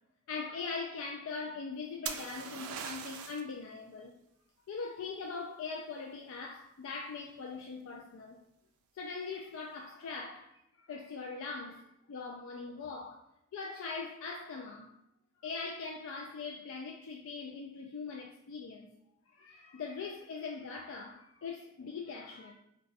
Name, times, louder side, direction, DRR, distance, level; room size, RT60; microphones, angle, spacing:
voice 1, 0.3-4.2 4.7-8.4 9.0-14.9 15.4-18.9 19.3-22.5, left 4 dB, 65° left, 0.3 m, -41 dB
sound 1, 2.1-3.5 7.2-7.6, right 7 dB, 85° right, 0.3 m, -40 dB
2.4 x 2.2 x 3.9 m
head